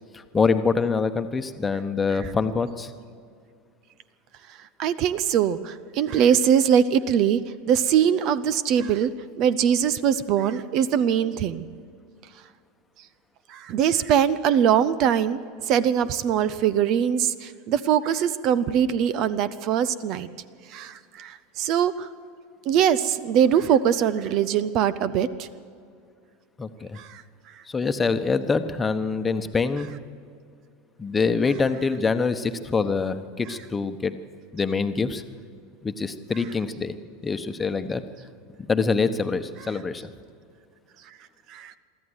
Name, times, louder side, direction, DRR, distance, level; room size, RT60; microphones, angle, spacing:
voice 1, 0.1-2.9 26.6-27.0 27.7-29.9 31.0-34.1 34.5-35.2 35.8-36.9 37.2-38.0 38.7-40.1, left 4 dB, 20° left, 9 dB, 1.1 m, -25 dB
voice 2, 4.8-7.4 7.7-9.1 9.4-11.6 13.5-15.4 15.7-20.3 20.7-22.1 22.7-25.5 27.0-27.2 41.5-41.7, right 9 dB, 50° right, 16 dB, 0.7 m, -22 dB
23.5 x 13.5 x 8.1 m, 2.3 s
hypercardioid pair, 85°, 0 cm